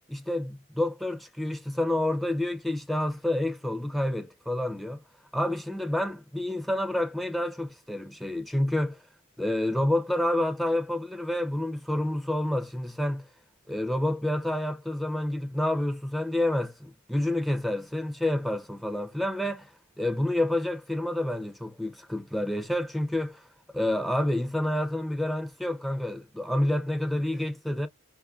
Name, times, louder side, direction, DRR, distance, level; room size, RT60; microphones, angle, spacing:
voice 1, 0.1-5.0 5.3-9.0 9.4-13.3 13.7-27.9, left 1 dB, ahead, 0.4 m, -29 dB
5.4 x 2.3 x 2.3 m
head